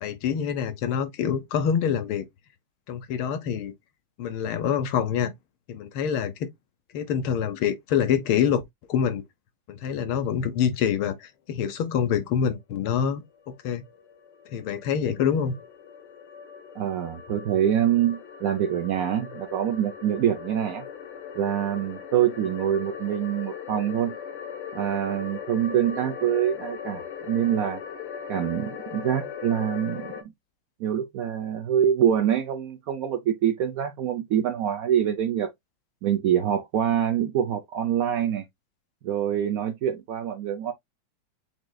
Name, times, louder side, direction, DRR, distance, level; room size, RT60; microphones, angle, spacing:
voice 1, 0.0-2.3 2.9-3.7 4.2-5.3 5.7-6.5 6.9-8.6 8.9-9.2 9.7-13.8 14.5-15.6, left 8 dB, 90° left, 1.7 m, -26 dB
sound 1, 13.2-30.2, left 8 dB, 70° left, 1.5 m, -39 dB
voice 2, 16.8-20.8 21.3-24.2 24.7-27.8 28.3-30.1 30.8-35.5 36.0-38.4 39.0-40.7, right 10 dB, 75° right, 0.8 m, -25 dB
7.6 x 3.1 x 2.2 m
omnidirectional pair, 2.2 m